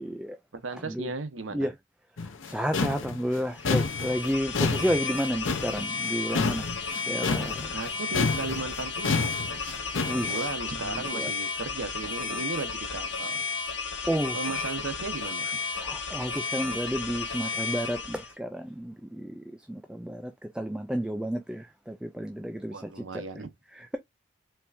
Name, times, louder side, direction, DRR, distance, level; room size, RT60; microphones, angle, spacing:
voice 1, 0.0-0.4 0.9-1.1 1.5-1.7 2.5-6.7 7.1-7.8 10.0-11.3 14.1-14.4 15.8-23.2 23.8-24.0, equal, 5° right, 0.4 m, -31 dB
voice 2, 0.5-1.7 7.7-9.8 10.1-13.4 14.3-15.6 22.7-23.5, right 3 dB, 90° right, 0.9 m, -36 dB
sound 1, 2.2-10.3, left 4 dB, 85° left, 0.8 m, -29 dB
sound 2, 3.5-18.3, left 4 dB, 65° left, 1.5 m, -33 dB
4.4 x 3.4 x 2.5 m
head